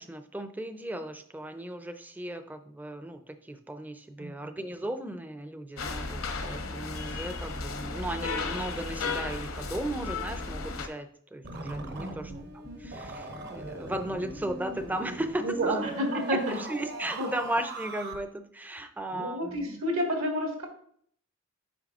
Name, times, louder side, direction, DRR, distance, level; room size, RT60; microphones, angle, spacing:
voice 1, 0.0-19.8, right 1 dB, 10° right, 9 dB, 0.4 m, -36 dB
sound 1, 5.8-10.9, left 4 dB, 75° left, 0.7 m, -34 dB
sound 2, 11.4-18.2, right 2 dB, 50° right, 0.9 m, -40 dB
voice 2, 12.0-12.5 15.4-16.6 17.2-17.3 19.1-20.7, equal, 80° right, 1 dB, 1.7 m, -30 dB
8.7 x 5.3 x 2.4 m, 0.62 s
head